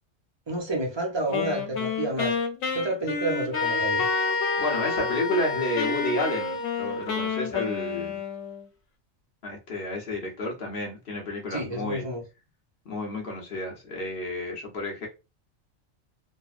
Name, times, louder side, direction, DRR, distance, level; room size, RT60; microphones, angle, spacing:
voice 1, 0.5-2.3 2.7-4.1 11.5-12.2, right 1 dB, 30° right, 0.5 m, -29 dB
Wind instrument woodwind instrument, 1.3-5.5 5.8-8.7, left 5 dB, 90° left, 1.0 m, -31 dB
sound 1, 3.5-7.2, left 3 dB, 15° left, 0.5 m, -29 dB
voice 2, 4.6-8.2 9.4-12.0 12.8-15.1, left 2 dB, 50° left, 1.0 m, -31 dB
3.3 x 2.0 x 2.4 m
omnidirectional pair, 1.3 m